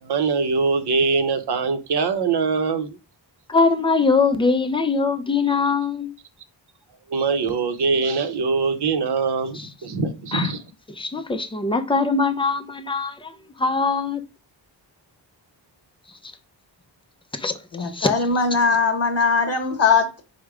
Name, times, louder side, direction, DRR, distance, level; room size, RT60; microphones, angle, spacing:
voice 1, 0.0-3.0 7.1-10.6, right 4 dB, 60° right, 0.7 m, -23 dB
voice 2, 3.5-6.1 9.5-9.7 10.3-10.5 10.9-14.2 17.4-18.1, left 4 dB, 15° left, 0.4 m, -22 dB
voice 3, 17.7-20.2, left 5 dB, 35° left, 1.1 m, -20 dB
4.8 x 2.1 x 4.6 m
wide cardioid pair, 150°, 44 cm